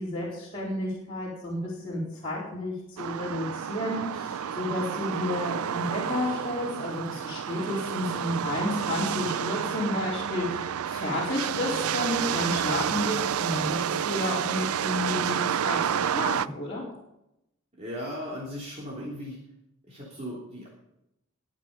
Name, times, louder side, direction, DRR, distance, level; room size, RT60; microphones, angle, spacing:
voice 1, 0.0-16.8, left 1 dB, 25° left, -8 dB, 4.2 m, -31 dB
sound 1, 3.0-16.5, right 8 dB, 85° right, 0.4 m, -30 dB
voice 2, 17.8-19.4 19.9-20.7, equal, 30° right, -5 dB, 3.5 m, -37 dB
21.5 x 7.5 x 5.5 m, 0.83 s
head